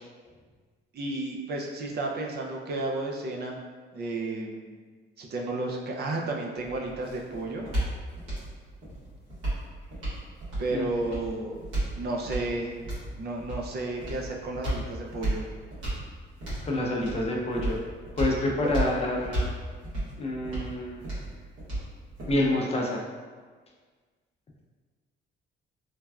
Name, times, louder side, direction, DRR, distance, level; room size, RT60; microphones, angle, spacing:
voice 1, 0.9-3.6 3.9-4.7 5.2-7.7 10.6-11.6 12.0-12.7 13.2-15.5 18.6-18.7, right 2 dB, 55° right, 0 dB, 0.5 m, -32 dB
sound 1, 6.6-22.6, right 1 dB, 85° right, 1.4 m, -34 dB
voice 2, 16.6-17.8 18.2-19.5 20.2-21.0 22.3-23.0, left 1 dB, 30° left, -1 dB, 0.5 m, -27 dB
3.2 x 2.2 x 2.3 m, 1.5 s
cardioid pair, 90°, 20 cm